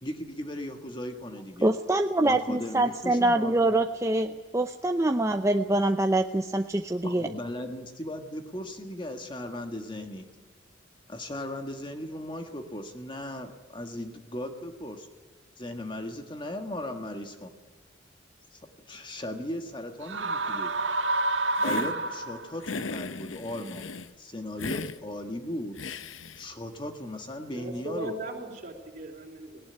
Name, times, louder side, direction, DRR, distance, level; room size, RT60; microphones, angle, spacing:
voice 1, 0.0-1.7 2.2-3.7 7.0-10.3 11.1-15.1 15.6-17.5 18.5-18.6 18.9-20.7 21.6-23.9 24.2-25.8 26.4-28.1, left 1 dB, 25° left, 5 dB, 1.6 m, -37 dB
voice 2, 1.6-7.3, right 1 dB, 15° right, 6 dB, 0.6 m, -25 dB
sound 1, 20.0-22.6, right 2 dB, 70° right, 1.7 m, -28 dB
Hiss, 21.6-21.9 22.6-24.1 24.6-25.0 25.8-26.5, left 3 dB, 85° left, 0.9 m, -36 dB
voice 3, 27.5-29.7, right 2 dB, 40° right, -3 dB, 3.7 m, -38 dB
19.0 x 18.0 x 9.5 m, 1.3 s
head